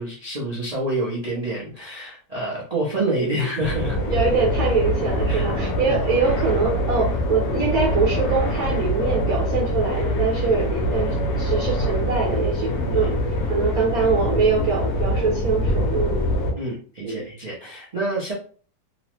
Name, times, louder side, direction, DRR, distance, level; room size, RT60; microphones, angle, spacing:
voice 1, 0.0-4.0 5.3-5.5 5.8-6.0 12.7-13.1 16.6-18.3, right 1 dB, 85° right, -5 dB, 0.3 m, -28 dB
sound 1, 3.6-16.5, equal, 70° left, 1.0 m, -24 dB
voice 2, 4.1-13.1 13.5-16.3 17.0-17.2, right 4 dB, 65° right, -4 dB, 1.2 m, -23 dB
3.0 x 2.0 x 3.0 m, 0.44 s
omnidirectional pair, 1.9 m